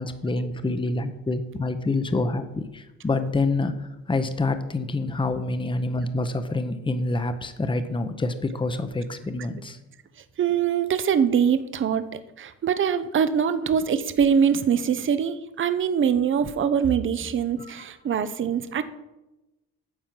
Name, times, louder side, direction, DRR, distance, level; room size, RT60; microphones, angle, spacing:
voice 1, 0.0-9.8 17.6-17.8, left 2 dB, 15° left, 9 dB, 0.8 m, -27 dB
voice 2, 10.4-12.1 12.4-18.8, right 7 dB, 40° right, 12 dB, 0.7 m, -23 dB
9.5 x 4.4 x 7.5 m, 1.0 s
cardioid pair, 90°, 30 cm